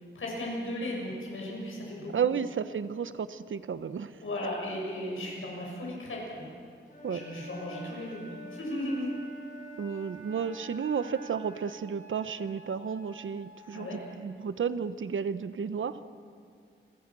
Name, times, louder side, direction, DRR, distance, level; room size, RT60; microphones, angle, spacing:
voice 1, 0.1-2.1 3.9-4.0 4.2-6.5 7.1-9.1 13.7-14.0, left 1 dB, 90° left, -2 dB, 6.7 m, -36 dB
voice 2, 2.1-4.1 7.0-7.2 9.8-16.0, right 7 dB, 75° right, 13 dB, 1.0 m, -32 dB
Wind instrument woodwind instrument, 6.9-11.5, right 3 dB, 40° left, 6.9 m, -47 dB
Wind instrument woodwind instrument 2, 10.3-14.2, right 2 dB, 40° right, 6.0 m, -51 dB
30.0 x 23.0 x 6.2 m, 2.3 s
wide cardioid pair, 135°, 20 cm